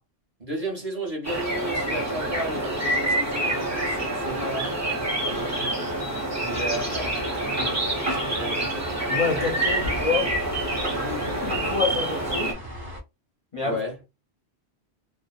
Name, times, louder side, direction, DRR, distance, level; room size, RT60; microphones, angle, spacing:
voice 1, 0.4-5.6 6.4-8.6 13.6-14.0, right 1 dB, 35° right, 1.0 m, -34 dB
sound 1, 1.2-12.5, right 1 dB, 20° right, 0.6 m, -27 dB
sound 2, 3.3-11.6, right 3 dB, 55° right, 0.8 m, -41 dB
sound 3, 6.5-13.0, equal, 80° right, 1.2 m, -36 dB
voice 2, 9.1-10.3 10.9-12.6 13.5-13.8, left 5 dB, 45° left, 0.4 m, -28 dB
2.7 x 2.1 x 2.3 m
omnidirectional pair, 1.1 m